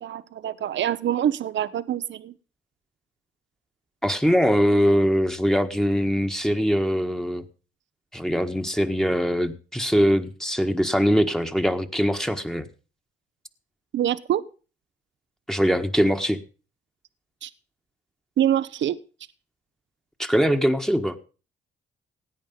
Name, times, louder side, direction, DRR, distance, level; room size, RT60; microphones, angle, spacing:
voice 1, 0.0-2.3 13.9-14.4 17.4-17.5 18.4-19.0, right 11 dB, 65° right, 16 dB, 0.8 m, -25 dB
voice 2, 4.0-7.4 8.1-12.7 15.5-16.4 20.2-21.2, equal, ahead, 6 dB, 1.5 m, -22 dB
17.0 x 9.1 x 5.4 m, 0.36 s
cardioid pair, 70°, 21 cm